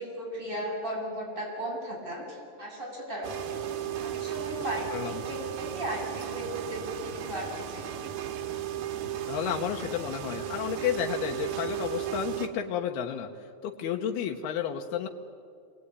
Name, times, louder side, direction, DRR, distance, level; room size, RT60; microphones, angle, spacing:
voice 1, 0.0-3.6 4.0-7.9, equal, 10° right, -3 dB, 8.0 m, -36 dB
sound 1, 3.2-12.5, right 10 dB, 85° right, 3.4 m, -35 dB
voice 2, 9.3-13.3 13.6-15.1, left 9 dB, 85° left, 2 dB, 3.1 m, -31 dB
27.5 x 21.5 x 9.7 m, 2.3 s
omnidirectional pair, 4.4 m